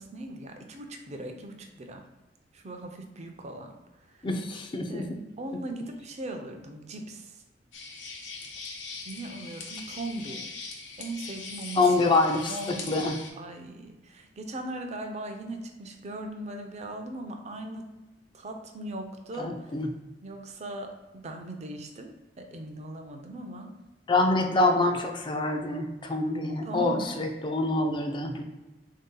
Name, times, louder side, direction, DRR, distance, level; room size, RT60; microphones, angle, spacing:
voice 1, 0.0-2.0 2.5-3.7 4.1-4.3 4.9-5.1 5.4-7.4 9.1-10.5 11.0-11.8 12.5-13.1 13.4-17.8 18.3-19.5 20.2-23.7 26.6-27.4, right 1 dB, 40° right, 4 dB, 0.5 m, -39 dB
voice 2, 4.2-5.2 11.8-12.6 12.9-13.2 19.4-19.9 24.1-28.4, left 2 dB, 25° left, 4 dB, 0.4 m, -26 dB
sound 1, 7.7-13.3, left 4 dB, 90° left, 0.7 m, -41 dB
3.6 x 2.7 x 3.7 m, 1.1 s
head